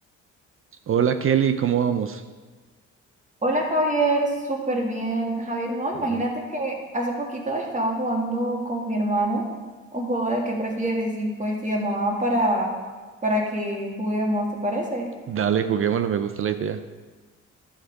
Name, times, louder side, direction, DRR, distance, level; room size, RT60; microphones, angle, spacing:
voice 1, 0.9-2.2 6.1-6.2 15.3-16.8, right 8 dB, 45° right, 10 dB, 0.5 m, -23 dB
voice 2, 3.4-9.4 9.9-12.7 13.2-15.1, right 1 dB, 25° right, 0 dB, 2.1 m, -25 dB
11.0 x 6.6 x 4.7 m, 1.4 s
cardioid pair, 90°, 30 cm